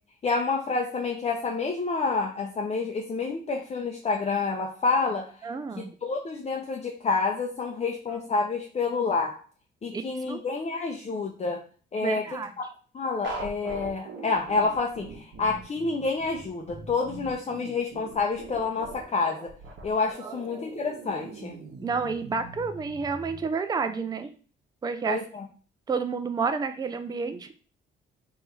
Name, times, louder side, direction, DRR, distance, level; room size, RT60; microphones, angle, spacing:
voice 1, 0.2-5.3 6.0-9.4 9.8-11.6 11.9-12.2 12.6-12.7 12.9-19.5 19.8-21.6 25.1-25.5, left 4 dB, 35° left, 1 dB, 0.7 m, -28 dB
voice 2, 5.4-5.9 8.1-8.2 9.9-10.4 12.0-12.5 20.2-20.4 21.8-24.3 24.8-25.2 25.9-27.5, right 5 dB, 20° right, 9 dB, 0.4 m, -30 dB
sound 1, 13.2-23.4, right 3 dB, 65° right, 1.2 m, -42 dB
3.6 x 2.6 x 4.5 m, 0.39 s
cardioid pair, 90°, 20 cm